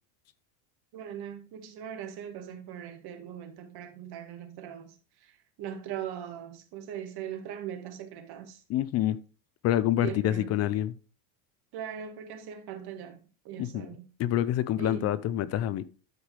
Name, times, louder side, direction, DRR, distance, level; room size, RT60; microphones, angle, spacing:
voice 1, 0.9-8.6 10.0-10.6 11.7-14.1 14.8-15.1, right 9 dB, 50° right, 1.9 m, -40 dB
voice 2, 8.7-9.2 9.6-11.0 13.6-13.9 14.2-15.8, left 12 dB, 35° left, 0.5 m, -27 dB
12.0 x 4.9 x 3.3 m
supercardioid pair, 125°, 48 cm